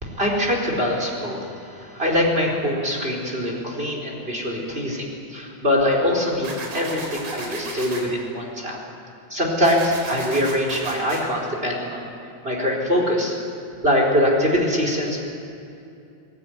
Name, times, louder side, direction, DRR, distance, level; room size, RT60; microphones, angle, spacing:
voice 1, 0.0-8.8 9.3-12.1 12.4-13.3 13.8-15.2, left 1 dB, 20° right, -1 dB, 4.5 m, -23 dB
sound 1, 6.4-8.0 9.6-11.2, right 2 dB, 80° right, 5.0 m, -34 dB
26.5 x 18.0 x 9.6 m, 2.6 s
omnidirectional pair, 3.4 m